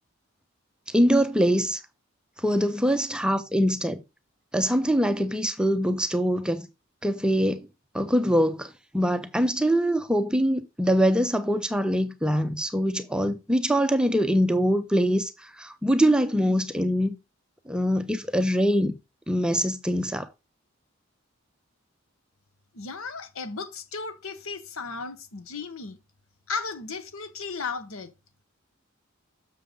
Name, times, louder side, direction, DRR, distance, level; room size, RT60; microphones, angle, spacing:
voice 1, 0.9-1.8 2.4-4.0 4.5-6.7 7.0-7.7 7.9-17.2 17.7-18.9 19.3-20.3, equal, 5° right, 0.6 m, -23 dB
voice 2, 22.7-26.0 26.5-28.1, left 4 dB, 90° left, 1.1 m, -35 dB
6.7 x 6.7 x 3.8 m
head